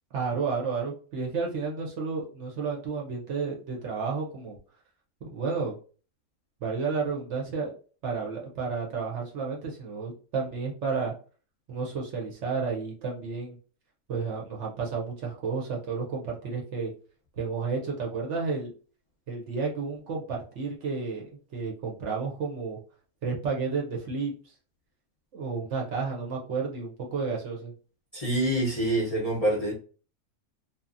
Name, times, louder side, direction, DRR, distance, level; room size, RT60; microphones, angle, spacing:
voice 1, 0.1-4.6 5.2-5.8 6.6-7.7 8.0-11.1 11.7-13.6 14.1-16.9 17.4-18.7 19.3-22.8 23.2-24.5 25.3-27.7, right 4 dB, 60° right, 0.9 m, -31 dB
voice 2, 28.1-29.7, right 1 dB, 35° left, 0.7 m, -26 dB
2.7 x 2.3 x 2.5 m
omnidirectional pair, 1.5 m